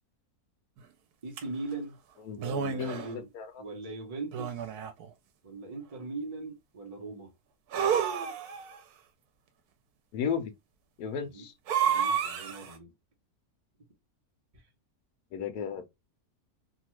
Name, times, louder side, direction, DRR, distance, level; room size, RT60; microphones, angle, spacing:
voice 1, 1.2-2.0 2.3-3.3 3.6-4.7 5.4-7.3 11.2-11.5 11.8-12.9 14.5-14.7, right 3 dB, 30° right, 0.7 m, -40 dB
hot breath from mouth, 1.4-1.5 2.4-3.1 4.3-5.1 7.7-8.8 11.7-12.7, right 8 dB, 80° right, 1.1 m, -30 dB
voice 2, 2.2-3.5 10.1-10.5 11.0-11.5 15.3-15.9, left 7 dB, 85° left, 1.1 m, -34 dB
2.9 x 2.3 x 2.9 m
omnidirectional pair, 1.6 m